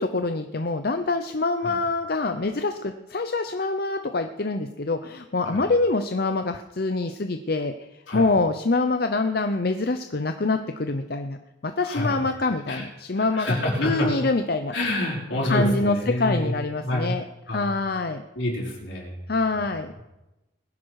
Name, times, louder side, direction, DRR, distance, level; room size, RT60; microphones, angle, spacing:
voice 1, 0.0-7.7 8.1-11.4 11.6-14.8 15.4-18.2 19.3-20.0, left 3 dB, 50° left, 7 dB, 0.7 m, -25 dB
voice 2, 11.8-12.2 12.7-12.8 13.2-14.1 14.7-16.5 16.8-17.1 17.5-17.8 18.3-19.2, left 1 dB, 75° left, -3 dB, 4.7 m, -27 dB
20.0 x 11.0 x 4.8 m, 1.0 s
head